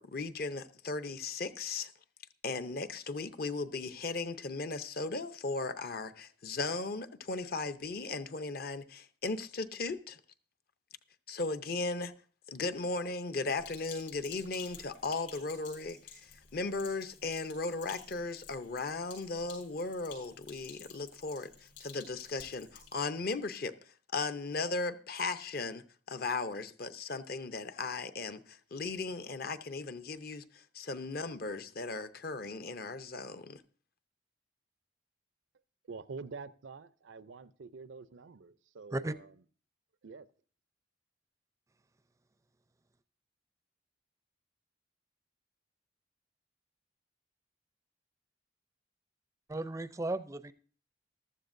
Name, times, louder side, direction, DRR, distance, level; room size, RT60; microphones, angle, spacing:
voice 1, 0.0-1.9 2.4-10.2 11.3-12.1 12.5-23.7 24.1-33.6, left 3 dB, 50° left, 0.7 m, -37 dB
Sink (filling or washing), 13.6-22.9, left 6 dB, 70° left, 6.6 m, -53 dB
voice 2, 35.9-39.4 40.0-40.3, right 4 dB, 85° right, 0.6 m, -47 dB
voice 3, 49.5-50.5, right 2 dB, 15° right, 0.4 m, -35 dB
14.5 x 13.0 x 2.6 m
head